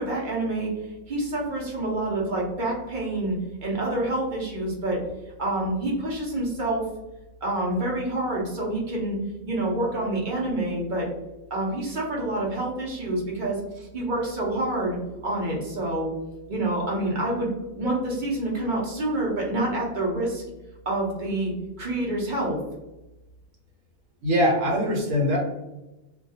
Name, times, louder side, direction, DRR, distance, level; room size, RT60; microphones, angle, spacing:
voice 1, 0.0-3.4 3.6-5.0 5.4-6.9 7.4-9.2 9.4-11.1 11.5-13.6 13.9-15.0 15.2-16.1 16.5-17.5 17.7-20.4 20.9-22.6, right 1 dB, 50° right, -3 dB, 0.7 m, -27 dB
voice 2, 24.2-25.4, equal, 75° right, -1 dB, 1.1 m, -22 dB
2.3 x 2.2 x 2.6 m, 1.0 s
omnidirectional pair, 1.4 m